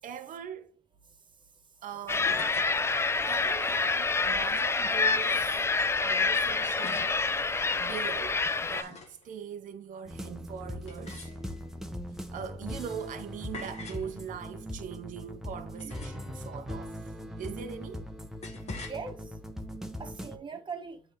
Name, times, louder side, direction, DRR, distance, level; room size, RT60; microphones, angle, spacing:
voice 1, 0.0-0.7 1.8-2.5 3.3-5.7 6.0-7.2 7.8-11.3 12.3-18.1 20.3-20.6, right 8 dB, 50° right, 0.6 m, -41 dB
sound 1, 2.0-2.7 4.2-4.8 6.8-7.2 8.3-9.3 10.9-11.7 13.5-14.1 15.8-16.4 18.4-19.0, left 4 dB, 40° left, 1.5 m, -45 dB
sound 2, 2.1-8.8, left 4 dB, 15° left, 0.4 m, -27 dB
sound 3, 10.0-20.4, equal, ahead, 0.9 m, -40 dB
voice 2, 15.8-16.1 18.7-19.4 20.0-21.0, right 5 dB, 30° right, 1.2 m, -41 dB
8.4 x 3.3 x 3.6 m
cardioid pair, 110°, 17 cm